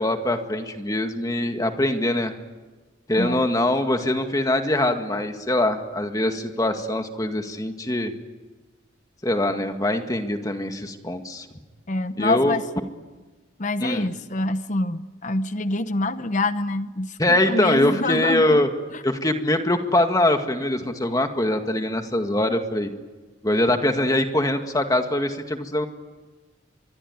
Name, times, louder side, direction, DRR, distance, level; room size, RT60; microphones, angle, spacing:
voice 1, 0.0-2.3 3.1-8.1 9.2-11.5 12.2-12.6 13.8-14.1 17.2-18.7 19.0-22.9 23.4-25.9, left 1 dB, 20° left, 6 dB, 1.9 m, -23 dB
voice 2, 11.9-12.6 13.6-18.6, left 2 dB, 40° left, 12 dB, 0.9 m, -26 dB
25.0 x 23.0 x 9.7 m, 1.3 s
head